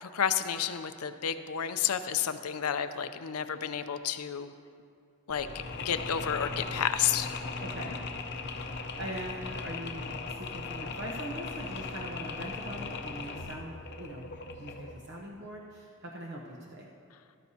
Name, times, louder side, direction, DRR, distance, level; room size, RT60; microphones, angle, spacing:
voice 1, 0.0-4.5 5.3-5.5 5.8-7.3, left 8 dB, 85° left, 10 dB, 0.5 m, -31 dB
Mechanisms, 5.3-15.1, left 4 dB, 50° left, 0.7 m, -38 dB
voice 2, 7.6-8.0 8.6-14.3 14.6-16.9, equal, 50° right, -2 dB, 0.9 m, -42 dB
14.5 x 13.0 x 2.8 m, 2.4 s
head